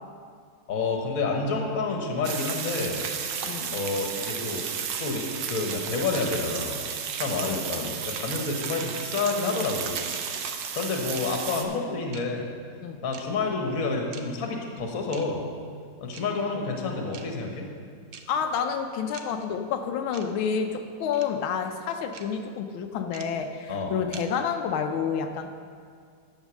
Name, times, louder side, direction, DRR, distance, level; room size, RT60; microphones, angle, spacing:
voice 1, 0.7-3.0 3.7-4.7 5.0-6.8 7.2-10.0 10.7-12.4 13.0-15.4 16.0-17.7 23.7-23.9, left 3 dB, 50° left, 2 dB, 1.6 m, -29 dB
sound 1, 2.2-11.6, right 7 dB, 85° right, 1.6 m, -33 dB
voice 2, 3.4-3.8 7.4-7.9 12.8-13.0 18.3-25.5, left 7 dB, 90° left, 5 dB, 1.5 m, -29 dB
sound 2, 6.1-6.2 7.1-7.2 8.1-8.2 9.1-9.2 10.1-10.2 11.1-11.3 12.1-12.2 13.1-13.2 14.1-14.2 15.1-15.2 16.1-16.2 17.1-17.2 18.1-18.2 19.1-19.2 20.1-20.2 21.1-21.2 22.1-22.2 23.1-23.2 24.1-24.2, right 8 dB, 65° right, 0.7 m, -42 dB
10.0 x 7.4 x 6.2 m, 2.1 s
omnidirectional pair, 2.2 m